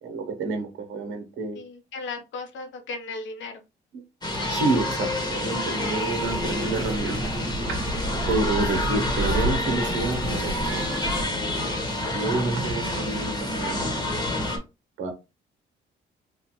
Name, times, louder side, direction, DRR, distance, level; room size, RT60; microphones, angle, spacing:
voice 1, 0.0-1.6 3.9-4.0 4.5-7.3 7.7-7.8 8.3-10.8 12.1-13.9 15.0-15.1, right 3 dB, 75° right, 1.1 m, -29 dB
voice 2, 1.6-3.5 12.6-12.8, left 3 dB, 70° left, 0.9 m, -36 dB
sound 1, 4.2-14.6, left 1 dB, 20° left, 1.2 m, -28 dB
sound 2, 6.2-11.2, right 1 dB, 10° right, 0.9 m, -31 dB
3.3 x 2.4 x 2.9 m
cardioid pair, 90°, 20 cm